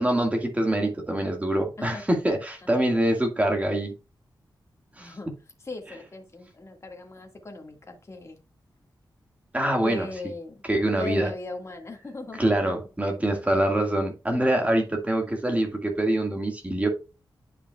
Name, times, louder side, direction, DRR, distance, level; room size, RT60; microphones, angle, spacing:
voice 1, 0.0-3.9 5.0-5.1 9.5-10.1 10.6-11.3 12.4-16.9, right 1 dB, 20° right, 1.8 m, -25 dB
voice 2, 5.0-5.3 5.6-8.4 9.8-10.6 11.0-12.7, left 3 dB, 35° left, 1.8 m, -38 dB
10.0 x 5.7 x 2.3 m
wide cardioid pair, 90°, 8 cm